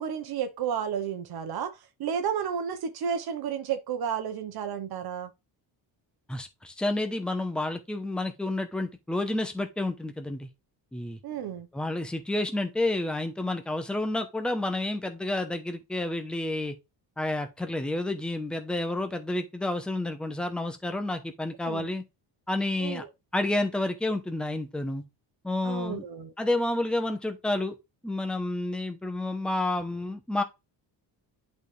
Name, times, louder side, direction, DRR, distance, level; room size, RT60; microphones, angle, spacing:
voice 1, 0.0-5.3 11.2-11.7 21.6-21.9 22.8-23.1 25.6-26.3, right 8 dB, 55° right, 1.1 m, -32 dB
voice 2, 6.3-10.5 10.9-11.2 11.7-16.7 17.2-22.0 22.5-23.0 23.3-25.0 25.4-26.0 26.4-27.7 28.0-30.4, left 2 dB, ahead, 0.8 m, -30 dB
10.5 x 4.4 x 3.3 m
cardioid pair, 170°, 44 cm